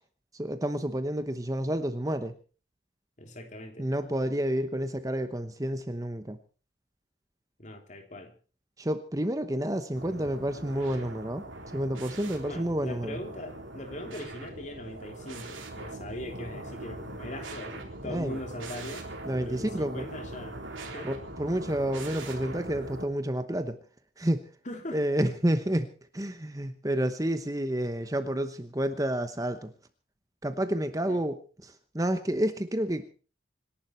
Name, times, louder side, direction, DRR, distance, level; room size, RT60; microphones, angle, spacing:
voice 1, 0.3-2.3 3.8-6.4 8.8-11.4 11.7-13.2 18.0-18.4 19.3-20.1 21.0-23.8 24.2-24.5 24.9-29.7 30.4-33.1, right 1 dB, 15° right, 9 dB, 1.0 m, -30 dB
voice 2, 3.2-3.9 7.6-8.3 12.5-19.1 19.4-21.1 24.6-25.0 31.1-31.2, left 1 dB, 40° left, 5 dB, 3.1 m, -41 dB
sound 1, 9.9-23.1, right 2 dB, 90° right, 3.9 m, -41 dB
26.0 x 11.5 x 4.4 m, 0.39 s
head